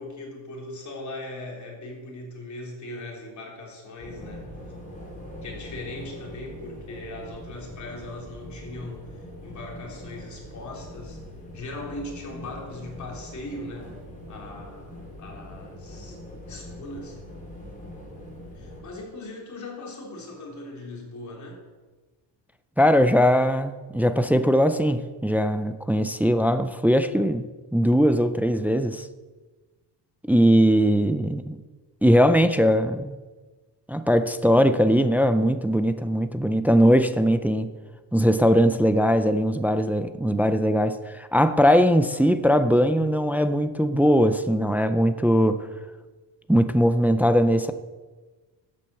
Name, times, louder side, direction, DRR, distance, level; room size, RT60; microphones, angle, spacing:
voice 1, 0.0-4.5 5.4-11.2 11.5-14.0 14.3-16.2 16.5-17.2 18.5-21.6, left 2 dB, 40° left, 3.7 m, -39 dB
sound 1, 4.0-18.8, left 1 dB, 20° left, 4.1 m, -42 dB
voice 2, 22.8-27.4 27.7-29.1 30.3-31.6 32.0-33.1 33.9-37.7 38.1-45.7 46.5-47.7, equal, 5° right, 0.3 m, -20 dB
12.0 x 8.6 x 7.6 m
cardioid pair, 165°, 43 cm